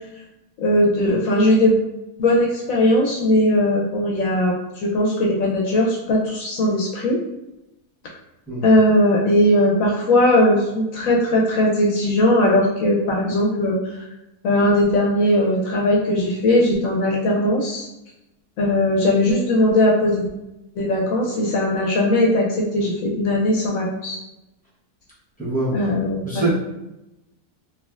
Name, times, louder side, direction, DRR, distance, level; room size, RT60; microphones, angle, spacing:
voice 1, 0.6-1.8 2.2-7.2 8.6-14.0 14.4-17.9 18.6-20.3 20.8-24.2 25.7-26.5, left 1 dB, 70° left, -2 dB, 0.9 m, -19 dB
voice 2, 25.4-25.8 26.2-26.5, right 2 dB, 15° left, -7 dB, 0.3 m, -23 dB
3.3 x 2.3 x 2.3 m, 0.95 s
omnidirectional pair, 1.7 m